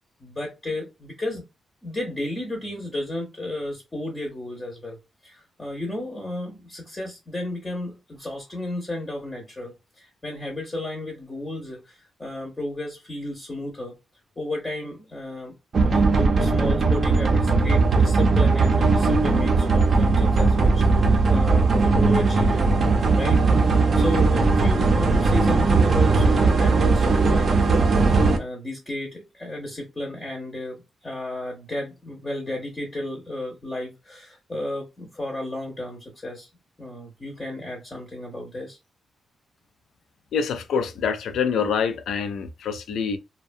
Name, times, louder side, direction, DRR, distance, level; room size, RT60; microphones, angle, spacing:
voice 1, 0.2-1.4 1.8-13.9 14.4-15.6 15.9-36.5 36.8-38.8, left 1 dB, 20° left, 0.6 m, -33 dB
sound 1, 15.7-28.4, right 3 dB, 45° right, 0.4 m, -19 dB
voice 2, 40.3-43.2, left 6 dB, 90° left, 0.4 m, -26 dB
2.7 x 2.2 x 2.5 m
wide cardioid pair, 160°, 0 cm